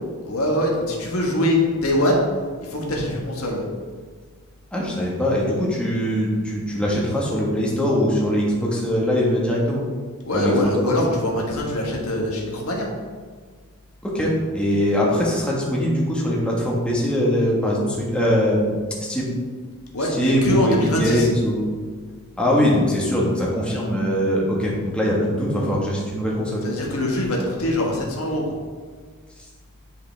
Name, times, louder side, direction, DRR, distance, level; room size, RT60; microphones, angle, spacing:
voice 1, 0.2-2.2 2.6-3.6 10.2-12.9 19.9-21.3 26.6-28.4, left 1 dB, 70° left, -1 dB, 1.5 m, -23 dB
voice 2, 4.7-9.8 10.3-11.2 14.0-19.3 20.1-21.6 22.4-26.6, equal, 5° left, -4 dB, 1.4 m, -22 dB
9.8 x 5.1 x 3.4 m, 1.6 s
head